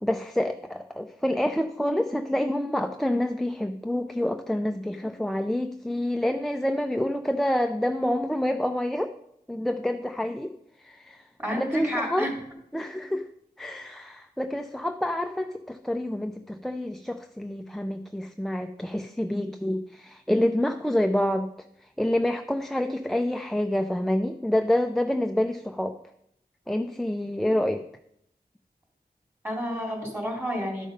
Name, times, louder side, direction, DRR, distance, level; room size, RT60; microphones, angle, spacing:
voice 1, 0.0-9.1 9.5-10.5 10.8-11.2 11.5-12.3 12.7-13.3 13.6-21.5 22.0-25.9 26.7-27.8, left 1 dB, ahead, 7 dB, 0.5 m, -27 dB
voice 2, 11.4-12.3 29.4-30.9, equal, 15° right, -1 dB, 3.7 m, -30 dB
12.0 x 5.4 x 5.1 m, 0.75 s
wide cardioid pair, 55°, 17 cm